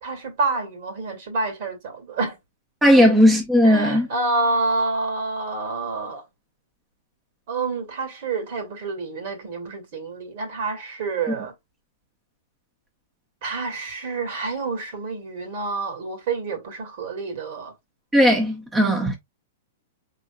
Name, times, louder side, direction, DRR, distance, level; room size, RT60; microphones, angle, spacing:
voice 1, 0.0-2.4 3.0-3.1 3.6-6.2 7.5-11.5 13.4-17.7, right 3 dB, 50° right, 2.1 m, -28 dB
voice 2, 2.8-4.1 18.1-19.1, equal, 10° right, 1.3 m, -16 dB
5.3 x 4.1 x 2.3 m
figure-of-eight pair, 105°, 0 cm